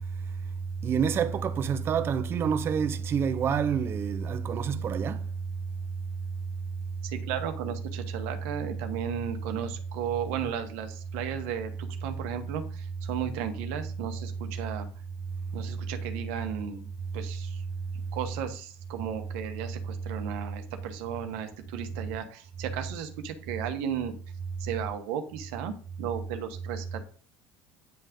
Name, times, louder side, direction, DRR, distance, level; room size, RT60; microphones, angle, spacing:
voice 1, 0.8-5.2, right 7 dB, 35° right, 0.6 m, -27 dB
voice 2, 7.0-14.9 15.5-16.9 17.1-17.6 18.1-24.1 24.6-27.0, right 8 dB, 80° right, 1.2 m, -35 dB
9.3 x 3.5 x 5.1 m
cardioid pair, 135°, 7 cm